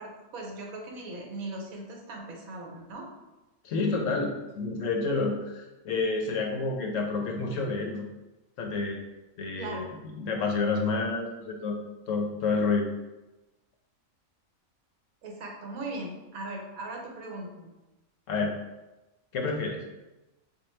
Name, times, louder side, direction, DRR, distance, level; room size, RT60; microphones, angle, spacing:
voice 1, 0.0-3.1 9.6-9.9 15.2-17.7, right 2 dB, 80° right, 0 dB, 1.2 m, -39 dB
voice 2, 3.6-8.1 8.6-9.0 9.4-9.9 10.1-11.8 12.1-12.9 18.3-18.5 19.3-19.8, left 3 dB, 70° left, 2 dB, 0.9 m, -29 dB
4.3 x 2.3 x 3.1 m, 1.0 s
omnidirectional pair, 1.5 m